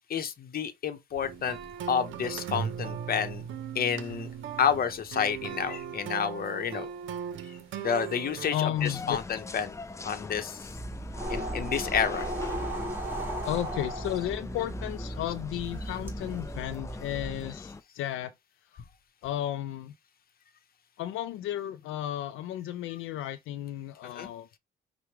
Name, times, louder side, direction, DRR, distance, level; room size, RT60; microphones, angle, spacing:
voice 1, 0.1-1.6 1.9-3.5 3.7-4.3 4.6-6.9 7.5-9.8 10.0-10.7 11.3-12.3 24.1-24.3, left 7 dB, 50° left, 0.8 m, -30 dB
sound 1, 1.2-8.6, right 8 dB, 75° right, 0.7 m, -38 dB
voice 2, 8.5-9.2 13.4-18.3 19.2-19.9 21.0-24.5, left 12 dB, 85° left, 0.4 m, -33 dB
sound 2, 8.7-17.8, left 3 dB, 15° left, 0.3 m, -43 dB
sound 3, 10.6-17.5, right 1 dB, 10° right, 1.7 m, -36 dB
5.8 x 2.2 x 3.2 m
cardioid pair, 90°, 20 cm